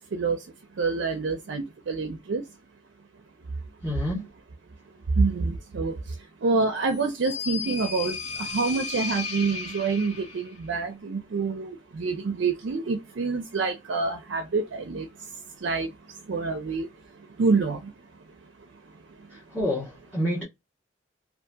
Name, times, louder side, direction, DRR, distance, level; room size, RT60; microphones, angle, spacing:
voice 1, 0.8-2.4 5.2-6.0 6.4-8.2 8.5-11.7 12.0-15.1 15.6-15.9 16.3-16.9 17.4-17.8, right 4 dB, 70° right, 0.4 m, -26 dB
voice 2, 3.8-4.3 19.5-20.4, left 1 dB, 5° left, 0.9 m, -28 dB
sound 1, 6.8-10.6, left 5 dB, 35° left, 1.1 m, -35 dB
2.7 x 2.5 x 2.2 m
head